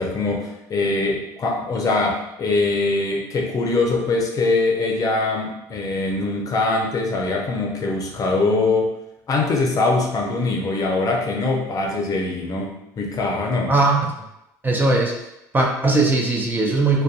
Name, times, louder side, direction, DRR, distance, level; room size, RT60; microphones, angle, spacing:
voice 1, 0.0-8.9 9.3-13.7, left 3 dB, 40° left, 0 dB, 0.6 m, -22 dB
voice 2, 13.7-14.1 14.6-15.1 15.5-17.0, right 2 dB, 20° right, 0 dB, 0.5 m, -19 dB
2.5 x 2.2 x 2.4 m, 0.87 s
supercardioid pair, 75°, 10 cm